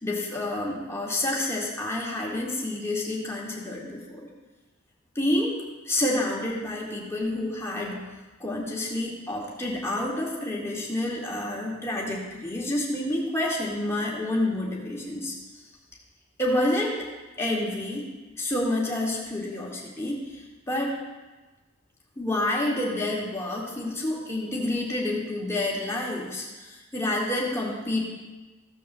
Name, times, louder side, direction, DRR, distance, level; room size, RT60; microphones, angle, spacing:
voice 1, 0.0-4.3 5.2-8.0 8.4-15.3 16.4-17.1 17.4-18.0 18.4-21.0 22.2-28.0, left 1 dB, 15° left, -4 dB, 2.2 m, -29 dB
16.0 x 5.4 x 6.8 m, 1.2 s
head